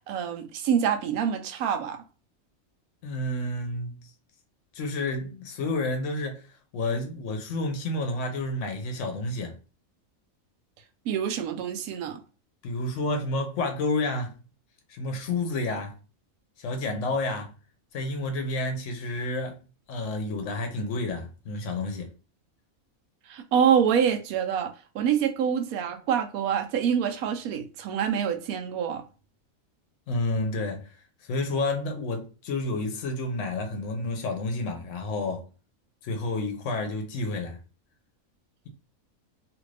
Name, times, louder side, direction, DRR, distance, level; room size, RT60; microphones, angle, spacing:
voice 1, 0.1-2.0 11.1-12.2 23.3-29.0, right 8 dB, 85° right, 1.0 m, -26 dB
voice 2, 3.0-4.1 4.7-6.5 6.7-9.6 12.6-14.4 14.9-15.9 16.6-17.5 17.9-19.6 19.9-22.1 30.1-30.9 31.3-35.4 36.0-37.6, left 2 dB, 65° left, 1.0 m, -30 dB
2.8 x 2.5 x 3.2 m
omnidirectional pair, 1.5 m